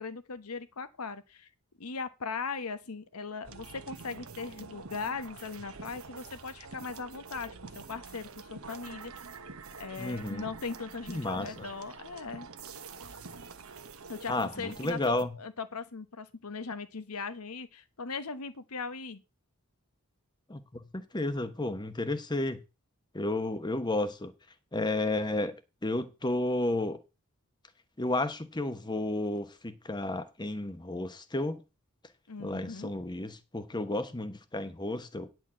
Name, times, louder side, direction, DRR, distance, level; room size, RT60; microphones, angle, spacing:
voice 1, 0.0-1.5 1.8-9.1 9.8-12.5 14.1-19.2 32.3-32.9, left 4 dB, 80° left, 1.1 m, -39 dB
sound 1, 3.4-15.2, right 4 dB, 65° right, 1.1 m, -46 dB
voice 2, 10.0-10.5 11.1-11.5 14.3-15.4 20.5-20.6 20.9-22.6 23.1-24.3 24.7-25.5 25.8-27.0 28.0-31.6 32.4-35.3, left 2 dB, 20° left, 1.0 m, -32 dB
10.0 x 4.6 x 7.5 m
head